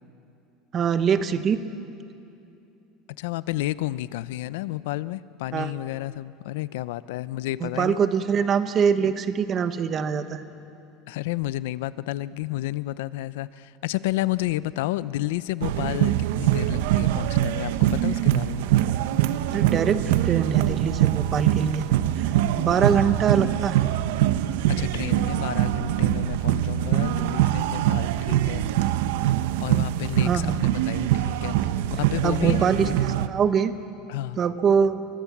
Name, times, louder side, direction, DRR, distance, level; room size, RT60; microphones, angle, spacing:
voice 1, 0.7-1.6 5.5-5.7 7.6-10.4 19.5-21.9 22.2-23.8 30.2-30.6 32.2-33.7 34.4-35.0, right 7 dB, 25° right, 10 dB, 1.1 m, -23 dB
voice 2, 3.2-8.1 11.1-18.7 24.7-28.6 29.6-33.3 34.1-34.4, left 16 dB, 85° left, 17 dB, 0.6 m, -31 dB
sound 1, 15.6-33.3, right 13 dB, 85° right, 0.9 m, -23 dB
29.5 x 24.0 x 7.3 m, 2.7 s
cardioid pair, 165°, 0 cm